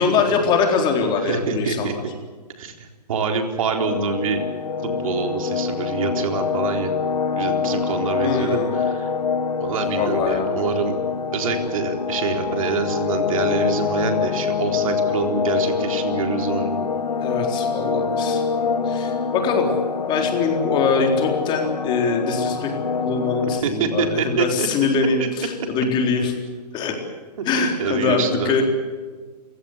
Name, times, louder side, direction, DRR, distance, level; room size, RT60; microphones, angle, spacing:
voice 1, 0.0-2.0 8.2-8.8 10.0-10.5 17.2-18.4 18.8-19.7 20.1-22.7 23.0-26.3 26.7-26.9 27.4-28.6, left 5 dB, 20° left, 3 dB, 4.0 m, -23 dB
voice 2, 1.2-1.9 2.6-4.4 4.8-6.9 7.3-9.1 9.6-11.0 11.3-16.8 23.5-24.7 25.2-25.3 27.4-27.5 27.8-28.5, right 5 dB, 55° right, 4 dB, 4.1 m, -25 dB
sound 1, 3.8-23.6, left 5 dB, 75° left, 1.6 m, -25 dB
29.5 x 17.0 x 8.1 m, 1.5 s
hypercardioid pair, 140°, 21 cm